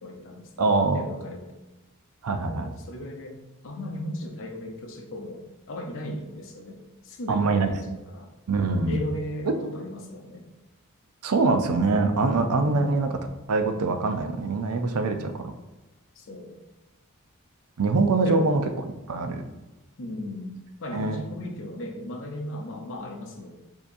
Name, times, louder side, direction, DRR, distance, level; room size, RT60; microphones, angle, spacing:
voice 1, 0.0-1.5 2.5-3.4 3.6-6.8 7.0-8.3 8.9-10.4 16.2-16.6 18.2-18.6 20.0-23.5, left 1 dB, 60° left, 3 dB, 0.7 m, -36 dB
voice 2, 0.6-1.0 2.2-2.7 7.3-7.7 8.5-9.0 9.5-9.6 11.2-13.1 13.5-15.5 17.8-18.6 19.1-19.4 20.9-21.2, right 3 dB, 85° right, 7 dB, 0.5 m, -23 dB
6.9 x 2.8 x 2.6 m, 1.1 s
head